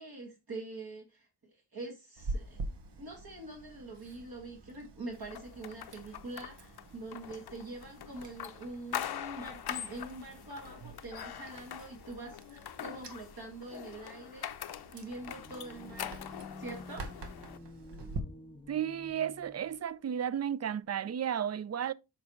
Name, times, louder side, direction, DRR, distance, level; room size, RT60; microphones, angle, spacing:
voice 1, 0.0-2.6 3.0-16.3 16.6-17.0, right 2 dB, 55° right, 1.9 m, -45 dB
Chewing mastication, 2.2-18.2, right 2 dB, 75° right, 1.3 m, -46 dB
sound 1, 5.3-17.6, left 10 dB, 60° left, 0.6 m, -43 dB
sound 2, 15.0-19.8, left 2 dB, 10° left, 0.8 m, -50 dB
voice 2, 18.7-21.9, right 9 dB, 40° right, 0.4 m, -33 dB
7.1 x 5.2 x 3.1 m
cardioid pair, 70°, 42 cm